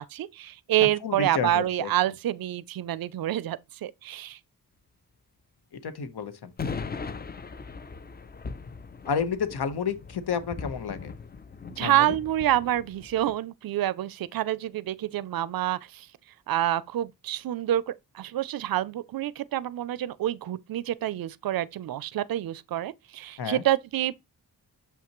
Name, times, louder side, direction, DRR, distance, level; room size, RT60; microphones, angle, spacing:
voice 1, 0.0-4.4 11.7-16.1 16.5-24.2, right 13 dB, 65° right, 0.5 m, -27 dB
voice 2, 1.0-1.9 5.8-6.5 9.0-11.1 11.8-11.9 23.4-23.6, left 6 dB, 80° left, 1.1 m, -30 dB
sound 1, 6.6-13.4, left 5 dB, 25° left, 0.4 m, -39 dB
7.0 x 5.8 x 3.0 m
wide cardioid pair, 130°, 39 cm